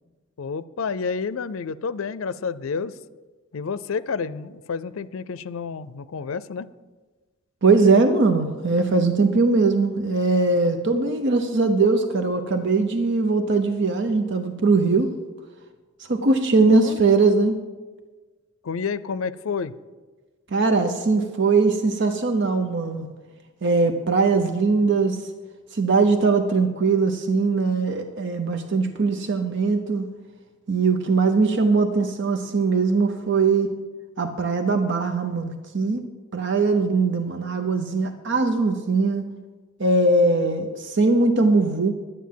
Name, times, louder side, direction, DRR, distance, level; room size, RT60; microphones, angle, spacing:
voice 1, 0.4-2.9 3.5-6.7 16.6-17.0 18.6-19.7, left 5 dB, 80° left, 16 dB, 0.5 m, -29 dB
voice 2, 7.6-15.1 16.1-17.6 20.5-23.1 23.6-25.2 25.7-30.1 30.7-33.7 34.2-36.0 36.3-39.2 39.8-41.9, right 3 dB, 60° right, 7 dB, 0.8 m, -20 dB
11.0 x 9.4 x 7.5 m, 1.3 s
head